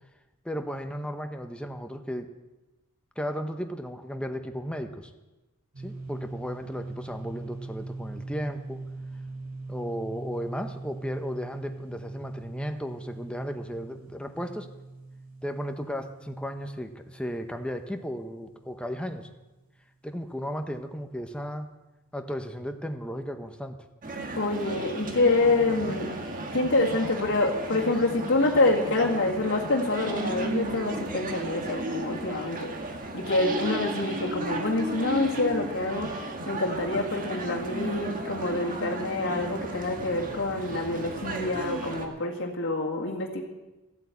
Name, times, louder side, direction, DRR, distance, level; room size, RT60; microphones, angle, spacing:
voice 1, 0.4-2.3 3.2-5.1 5.8-8.8 9.7-14.7 15.4-19.3 20.0-21.7 22.1-23.8, equal, 5° left, 6 dB, 1.0 m, -35 dB
sound 1, 5.7-19.2, right 3 dB, 70° right, 5.0 m, -41 dB
sound 2, 24.0-42.1, right 2 dB, 40° right, 1.7 m, -34 dB
voice 2, 24.4-26.1 26.5-32.7 33.1-43.4, left 2 dB, 60° left, -2 dB, 2.0 m, -26 dB
14.0 x 8.3 x 8.4 m, 1.1 s
head